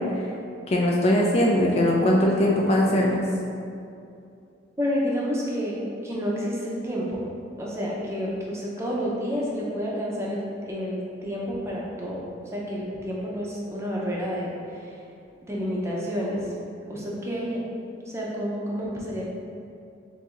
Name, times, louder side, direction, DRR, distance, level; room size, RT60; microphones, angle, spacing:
voice 1, 0.7-3.2, left 1 dB, 30° left, -2 dB, 0.3 m, -20 dB
voice 2, 4.8-7.2 7.6-12.3 12.5-15.0 15.4-16.5 16.9-17.6 18.1-19.2, equal, 15° right, -5 dB, 0.6 m, -29 dB
6.8 x 2.6 x 2.4 m, 2.6 s
head